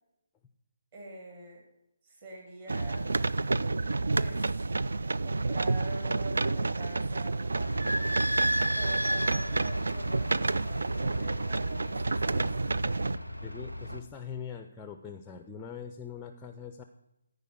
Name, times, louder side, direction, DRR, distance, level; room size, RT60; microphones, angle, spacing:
voice 1, 0.9-1.6 2.0-3.1 4.1-4.7 5.2-8.1 8.7-12.5, right 2 dB, 30° right, -1 dB, 2.2 m, -45 dB
sound 1, 2.7-13.2, right 3 dB, 65° right, 0.3 m, -30 dB
Idling / Squeak, 7.6-14.0, right 1 dB, 90° right, 0.8 m, -34 dB
voice 2, 13.4-16.8, left 7 dB, 10° left, 8 dB, 0.5 m, -42 dB
14.0 x 5.0 x 6.3 m, 0.88 s
figure-of-eight pair, 145°, 0 cm